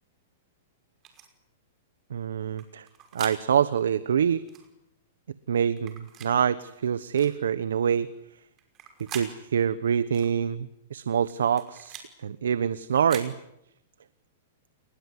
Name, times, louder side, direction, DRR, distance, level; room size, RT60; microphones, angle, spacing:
sound 1, 1.0-1.3 2.6-3.4 4.5-4.7 5.8-6.3 7.2-7.4 8.6-9.3 10.1-10.3 11.3-12.1 12.9-13.3, right 8 dB, 30° right, 5.7 m, -43 dB
voice 1, 2.1-2.9 3.1-4.4 5.5-8.1 9.1-13.3, right 8 dB, 85° right, 15 dB, 1.1 m, -26 dB
29.0 x 20.5 x 9.7 m, 0.82 s
hypercardioid pair, 135°, 0 cm